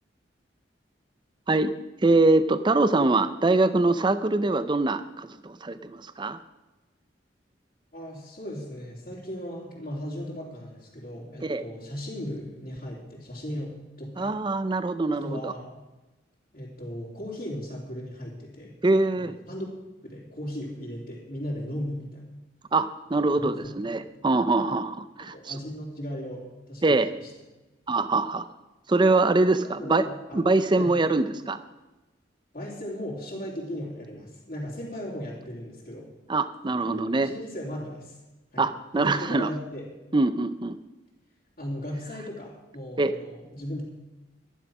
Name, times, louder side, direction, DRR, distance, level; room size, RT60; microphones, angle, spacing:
voice 1, 2.0-6.4 11.4-11.6 14.2-15.5 18.8-19.4 22.7-25.5 26.8-27.1 27.9-28.5 28.9-30.0 30.3-31.6 36.3-37.3 38.6-39.5 40.1-40.7 43.0-43.1, right 2 dB, 25° right, 12 dB, 0.5 m, -23 dB
voice 2, 7.9-14.4 15.1-15.7 16.5-18.7 19.1-19.7 20.0-22.4 23.3-23.7 25.2-27.3 29.8-30.4 30.8-31.0 32.5-36.1 36.8-38.2 38.5-38.7 38.9-39.9 41.6-43.8, equal, 45° left, -7 dB, 3.2 m, -37 dB
12.5 x 11.0 x 6.0 m, 1.1 s
head